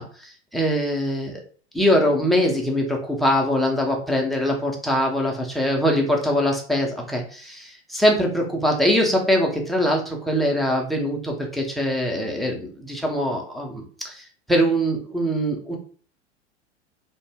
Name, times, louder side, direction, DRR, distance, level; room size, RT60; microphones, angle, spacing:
voice 1, 0.0-1.4 1.7-15.8, equal, ahead, 1 dB, 0.5 m, -23 dB
2.6 x 2.0 x 3.3 m, 0.42 s
figure-of-eight pair, 90°, 35 cm